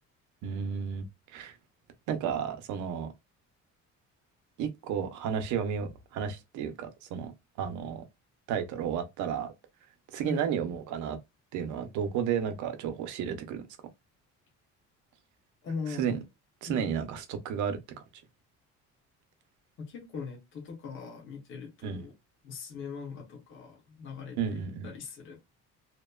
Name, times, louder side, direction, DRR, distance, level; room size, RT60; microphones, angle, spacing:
voice 1, 0.4-1.1 1.3-1.6 2.1-3.1 4.6-7.3 7.6-8.0 8.5-9.5 10.1-11.2 11.5-13.6 16.0-16.2 16.6-17.8 21.8-22.0 24.4-24.9, right 7 dB, 75° right, 0.7 m, -32 dB
voice 2, 15.6-16.1 16.7-16.9 19.8-22.1 22.4-25.4, left 5 dB, 40° left, 0.8 m, -40 dB
2.9 x 2.1 x 2.2 m
cardioid pair, 175°, 30 cm